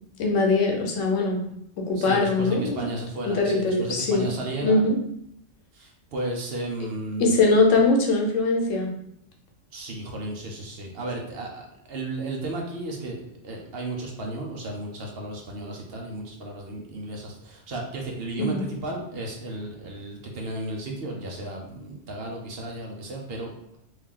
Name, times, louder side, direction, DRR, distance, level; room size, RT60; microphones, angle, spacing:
voice 1, 0.2-1.4 1.8-2.8 3.2-4.3 4.6-5.0 7.2-8.9 18.4-18.6, left 3 dB, 85° left, 1 dB, 1.1 m, -22 dB
voice 2, 1.9-4.8 5.7-7.4 9.7-23.8, right 2 dB, 55° right, 0 dB, 0.9 m, -34 dB
3.1 x 2.7 x 3.7 m, 0.74 s
omnidirectional pair, 1.3 m